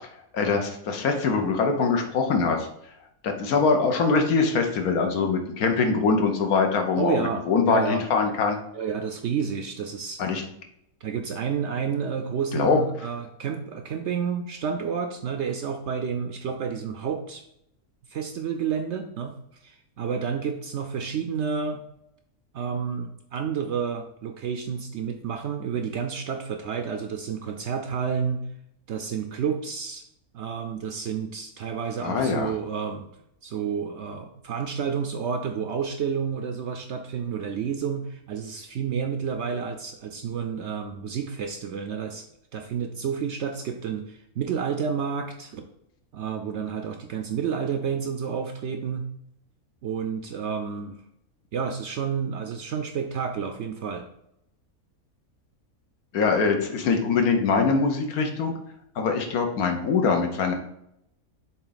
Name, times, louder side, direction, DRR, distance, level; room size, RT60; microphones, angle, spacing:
voice 1, 0.3-2.7 3.2-8.6 10.2-10.4 12.5-12.8 32.0-32.5 56.1-58.5 59.0-60.5, left 4 dB, 75° left, 4 dB, 1.4 m, -23 dB
voice 2, 7.0-8.1 8.7-10.2 11.0-17.4 18.1-19.3 19.6-21.8 22.5-28.4 28.9-30.0 30.3-33.1 33.4-42.3 42.5-45.7 46.1-49.0 49.8-51.0 51.5-54.1, right 6 dB, 65° right, 6 dB, 0.7 m, -30 dB
7.0 x 3.7 x 4.0 m, 0.76 s
omnidirectional pair, 1.6 m